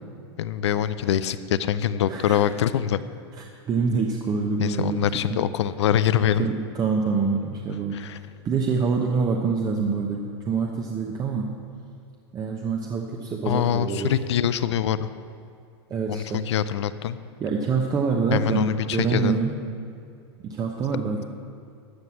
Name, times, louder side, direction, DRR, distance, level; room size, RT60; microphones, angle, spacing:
voice 1, 0.4-3.0 4.6-6.5 7.9-8.2 13.4-15.1 16.1-17.2 18.3-19.4, left 10 dB, 85° left, 14 dB, 0.6 m, -24 dB
voice 2, 2.1-2.4 3.4-5.4 6.1-8.0 8.4-11.5 12.3-14.1 15.9-16.4 17.4-19.6 20.4-21.2, right 5 dB, 25° right, 1 dB, 1.0 m, -26 dB
13.0 x 5.9 x 8.3 m, 2.4 s
supercardioid pair, 125°, 14 cm